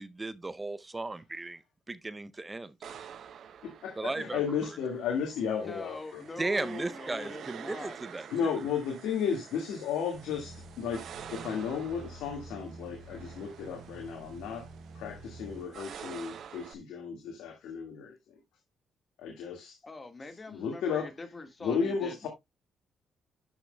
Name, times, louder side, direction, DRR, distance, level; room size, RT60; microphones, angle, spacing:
voice 1, 0.0-1.6 1.9-2.7 4.0-4.4 6.4-8.3, right 2 dB, 20° right, 0.6 m, -35 dB
sound 1, 2.8-16.7, right 8 dB, 65° right, 0.8 m, -48 dB
voice 2, 3.6-6.2 8.3-14.7 14.9-18.3 19.2-19.8 20.5-21.1 21.6-22.3, left 6 dB, 90° left, 1.9 m, -34 dB
voice 3, 5.6-8.0 19.8-22.3, left 3 dB, 25° left, 1.6 m, -43 dB
sound 2, 10.1-15.7, right 3 dB, 80° right, 2.7 m, -48 dB
12.0 x 5.9 x 2.2 m
cardioid pair, 90°, 0 cm